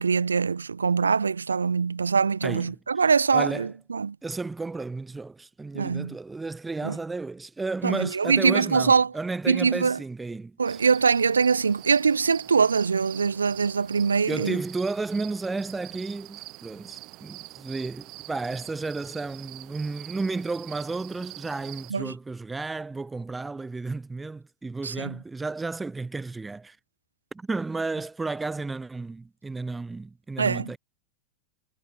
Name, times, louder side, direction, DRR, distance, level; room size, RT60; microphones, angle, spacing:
voice 1, 0.0-4.1 5.7-6.1 6.8-7.0 7.8-9.1 9.5-10.0 10.6-14.6 21.9-22.1 24.8-25.2 30.4-30.7, right 5 dB, 75° right, 0.5 m, -23 dB
voice 2, 2.4-2.8 3.3-3.7 4.2-10.8 14.3-26.8 27.3-30.8, right 3 dB, 10° right, 0.4 m, -32 dB
sound 1, 10.7-21.9, right 20 dB, 40° right, 1.0 m, -45 dB
figure-of-eight pair, 90°, 0 cm